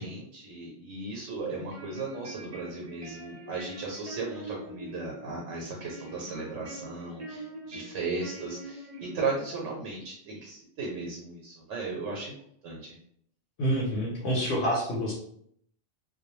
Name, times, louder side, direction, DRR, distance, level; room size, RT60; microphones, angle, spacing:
voice 1, 0.0-12.3 12.6-12.9, right 3 dB, 80° right, -2 dB, 1.0 m, -36 dB
sound 1, 1.5-9.5, right 1 dB, 40° right, 0.5 m, -44 dB
voice 2, 13.6-15.1, equal, 65° left, -4 dB, 0.9 m, -27 dB
2.2 x 2.1 x 3.0 m, 0.66 s
omnidirectional pair, 1.3 m